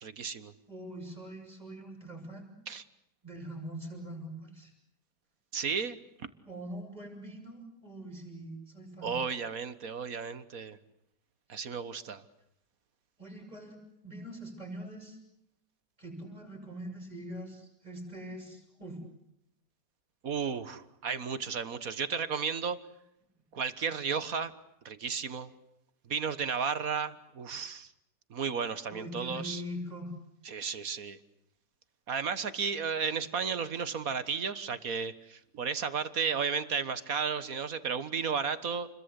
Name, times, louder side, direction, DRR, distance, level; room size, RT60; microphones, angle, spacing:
voice 1, 0.0-0.5 2.7-2.8 5.5-6.0 9.0-10.8 11.5-12.2 20.2-22.8 23.5-24.5 24.9-25.5 26.1-27.9 28.3-29.6 30.4-31.2 32.1-38.9, right 6 dB, 60° right, 13 dB, 1.8 m, -33 dB
voice 2, 0.7-2.5 3.2-4.7 6.5-9.2 13.2-13.7 14.0-15.2 16.0-19.0 28.9-30.1, equal, 25° right, 3 dB, 8.2 m, -43 dB
30.0 x 22.0 x 8.3 m, 0.79 s
omnidirectional pair, 1.7 m